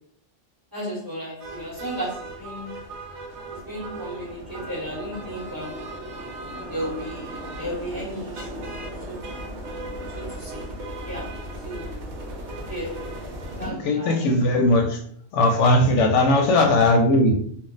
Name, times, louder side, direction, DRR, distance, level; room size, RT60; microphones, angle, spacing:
voice 1, 0.7-2.6 3.5-5.8 6.7-8.6 9.1-9.2 10.1-10.6 11.0-11.3 11.6-11.9 12.7-13.0 13.6-14.2, equal, 20° right, -7 dB, 0.8 m, -34 dB
sound 1, 1.4-13.7, right 1 dB, 70° right, 0.9 m, -36 dB
voice 2, 13.6-15.0 15.3-17.3, left 2 dB, 75° left, 3 dB, 0.9 m, -19 dB
2.4 x 2.0 x 3.8 m, 0.64 s
omnidirectional pair, 1.3 m